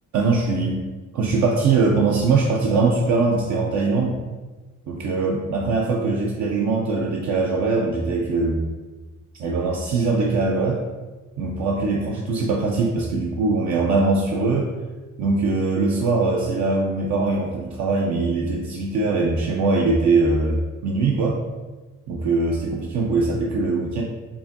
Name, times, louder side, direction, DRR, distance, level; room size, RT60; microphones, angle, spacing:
voice 1, 0.1-4.2 4.9-8.6 9.4-10.8 11.4-14.7 15.2-21.4 22.1-24.0, right 3 dB, 65° right, -2 dB, 0.6 m, -22 dB
4.7 x 2.5 x 2.6 m, 1.2 s
cardioid pair, 90°, 30 cm